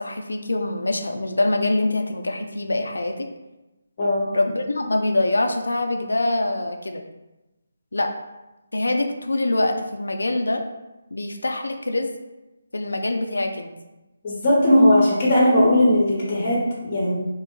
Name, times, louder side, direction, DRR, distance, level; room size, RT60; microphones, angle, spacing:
voice 1, 0.0-3.3 4.3-7.0 7.9-8.1 8.7-10.6 11.1-12.1 12.7-13.7, left 2 dB, 90° left, 4 dB, 0.3 m, -24 dB
voice 2, 4.0-4.3 14.2-17.1, left 1 dB, 30° left, -5 dB, 0.7 m, -18 dB
2.6 x 2.1 x 3.0 m, 1.0 s
figure-of-eight pair, 160°, 0 cm